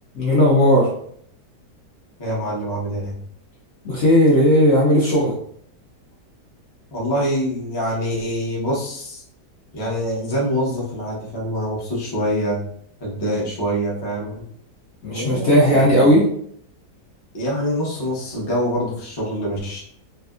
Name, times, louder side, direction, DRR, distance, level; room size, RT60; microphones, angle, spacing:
voice 1, 0.1-0.9 3.8-5.3 15.0-16.2, equal, 55° left, -5 dB, 0.8 m, -15 dB
voice 2, 2.2-3.2 6.9-9.2 9.7-12.6 13.0-14.4 15.1-16.1 17.3-19.8, equal, 25° left, -5 dB, 0.5 m, -25 dB
3.3 x 2.7 x 2.4 m, 0.66 s
omnidirectional pair, 1.8 m